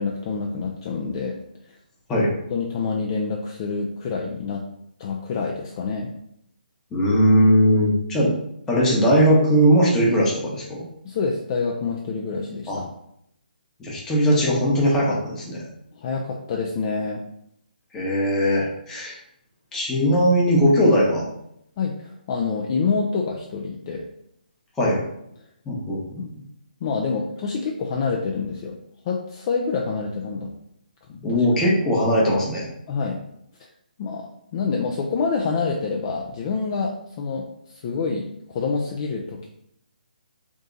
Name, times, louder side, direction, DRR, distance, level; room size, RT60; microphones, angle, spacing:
voice 1, 0.0-1.4 2.5-4.6 5.0-6.1 11.0-12.9 16.0-17.2 21.8-24.1 26.2-26.3 26.8-28.8 29.0-30.5 31.1-31.5 32.9-33.2 34.0-34.3 34.5-39.5, left 4 dB, 30° left, 0 dB, 0.4 m, -27 dB
voice 2, 6.9-8.3 8.7-10.8 12.7-12.8 13.8-15.7 17.9-19.2 19.7-21.2 24.8-25.0 25.7-26.2 31.2-32.7, equal, 10° left, -5 dB, 0.9 m, -19 dB
3.5 x 2.8 x 3.8 m, 0.75 s
hypercardioid pair, 160°, 5 cm